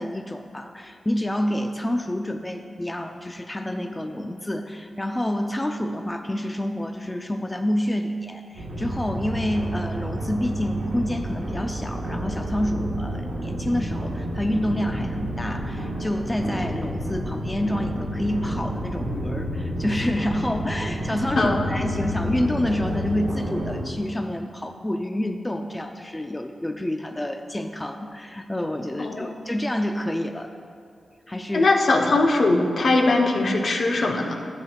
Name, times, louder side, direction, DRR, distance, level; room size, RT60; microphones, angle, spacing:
voice 1, 0.0-30.5 31.3-31.7, left 1 dB, 15° left, 5 dB, 0.3 m, -28 dB
sound 1, 8.6-23.8, equal, 90° right, 1.4 m, -30 dB
voice 2, 21.4-21.7 29.0-29.4 31.5-34.3, left 2 dB, 65° left, 2 dB, 0.8 m, -21 dB
12.5 x 7.4 x 2.3 m, 2.3 s
cardioid pair, 80°, 0 cm